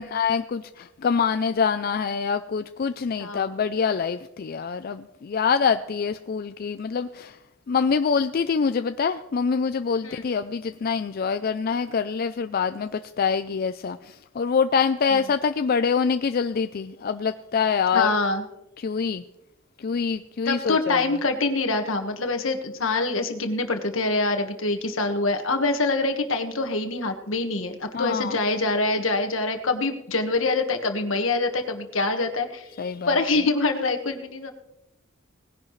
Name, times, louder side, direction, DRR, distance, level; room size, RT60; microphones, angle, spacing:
voice 1, 0.0-7.4 7.7-18.1 18.8-19.2 19.8-21.2 27.9-28.4 32.8-33.2, left 6 dB, 50° left, 9 dB, 0.4 m, -25 dB
voice 2, 3.2-3.5 10.0-10.3 15.1-15.2 17.9-18.4 20.4-32.7 33.1-34.5, left 3 dB, 80° left, 5 dB, 1.5 m, -25 dB
19.0 x 10.5 x 3.2 m, 0.89 s
head